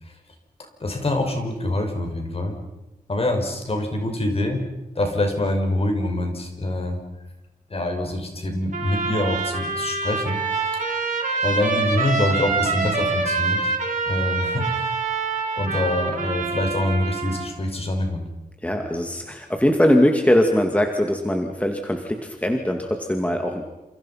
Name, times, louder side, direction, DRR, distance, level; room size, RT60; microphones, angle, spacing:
voice 1, 0.8-2.6 3.1-4.6 5.0-7.0 7.7-10.4 11.4-13.7 14.1-14.9 15.5-18.2, left 1 dB, 40° left, 4 dB, 5.8 m, -25 dB
Trumpet, 8.7-17.5, right 4 dB, 55° right, 5.5 m, -26 dB
voice 2, 18.6-23.6, left 1 dB, 10° left, 3 dB, 2.3 m, -21 dB
29.0 x 28.5 x 5.8 m, 1.0 s
wide cardioid pair, 130°, 15 cm